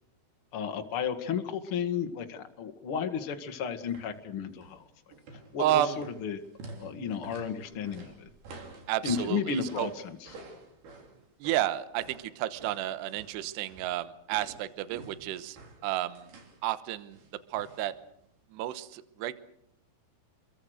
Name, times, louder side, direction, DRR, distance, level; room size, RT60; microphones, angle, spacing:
voice 1, 0.5-4.8 5.5-6.4 6.8-8.3 9.0-10.3, left 6 dB, 65° left, 6 dB, 1.3 m, -33 dB
sound 1, 3.9-4.2 4.5-4.8 5.1-14.0 14.3-16.6 17.1-17.9 18.2-18.3, right 2 dB, 55° right, 5.0 m, -49 dB
voice 2, 5.6-6.0 8.9-9.9 11.4-15.6 15.8-16.3 16.6-17.2 17.5-17.9 18.5-19.3, right 13 dB, 70° right, 13 dB, 2.9 m, -31 dB
29.0 x 22.5 x 6.5 m, 0.73 s
omnidirectional pair, 5.5 m